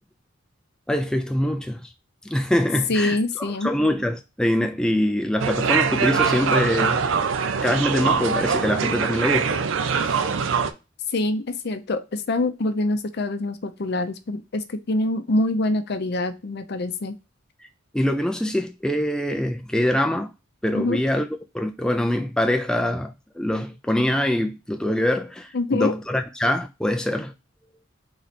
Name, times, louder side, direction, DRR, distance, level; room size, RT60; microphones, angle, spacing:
voice 1, 0.9-1.9 2.2-7.1 7.6-9.6 10.0-10.2 17.9-20.3 20.6-21.3 21.5-27.3, left 1 dB, 5° left, 0.3 m, -24 dB
voice 2, 2.9-3.7 11.1-17.1 20.7-21.0 25.5-25.9, left 2 dB, 55° left, 0.6 m, -25 dB
sound 1, 5.4-10.7, right 6 dB, 70° right, 0.5 m, -23 dB
3.9 x 3.2 x 4.1 m
head